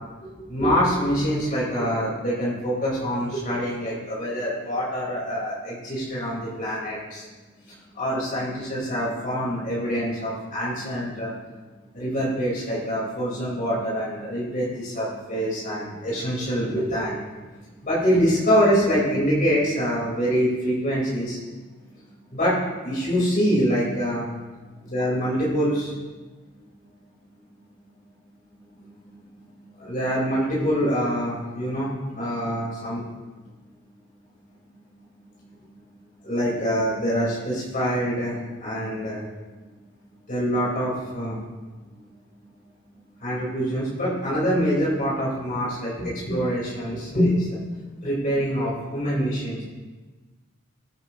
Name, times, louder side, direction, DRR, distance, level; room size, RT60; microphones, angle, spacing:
voice 1, 0.2-7.2 7.6-11.3 11.9-17.2 17.8-21.4 22.3-24.3 24.8-25.9 28.7-28.9 29.6-33.0 36.2-39.2 40.3-41.4 43.2-47.6 48.0-49.6, equal, 45° left, -7 dB, 4.7 m, -25 dB
21.5 x 9.1 x 3.1 m, 1.3 s
head